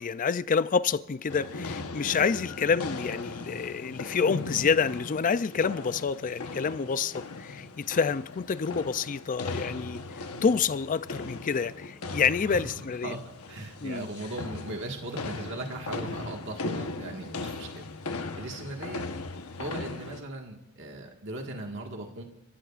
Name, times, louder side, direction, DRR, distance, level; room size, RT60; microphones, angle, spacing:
voice 1, 0.0-13.2 13.8-14.1, left 5 dB, 40° left, 0.4 m, -28 dB
sound 1, 1.3-20.2, left 3 dB, 80° left, 1.1 m, -38 dB
voice 2, 12.4-13.2 13.5-19.1 19.6-22.2, right 2 dB, 60° right, 1.7 m, -38 dB
30.0 x 16.0 x 2.5 m
head